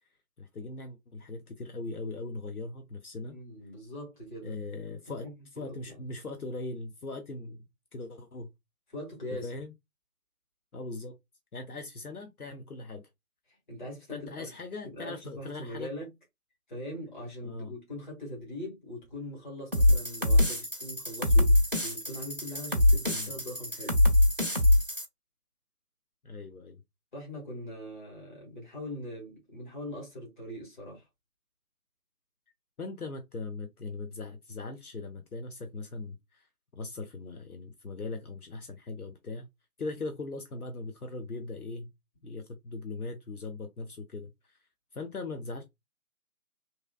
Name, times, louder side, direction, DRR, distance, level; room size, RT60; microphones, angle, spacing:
voice 1, 0.4-3.4 4.4-5.3 5.5-7.6 7.9-8.5 9.3-9.7 10.7-11.1 11.5-13.1 14.1-15.9 17.4-17.7 23.1-23.3 26.2-26.8 32.8-36.5 36.7-39.5 39.8-41.9 42.2-44.6 44.9-45.6, left 3 dB, 75° left, 0.7 m, -40 dB
voice 2, 3.2-4.6 4.9-6.0 8.9-9.6 13.7-14.5 14.8-16.1 16.7-24.0 27.1-31.0, left 1 dB, 30° left, 1.7 m, -41 dB
sound 1, 19.7-25.1, left 1 dB, 40° right, 0.4 m, -24 dB
3.0 x 2.6 x 2.3 m
figure-of-eight pair, 150°, 45 cm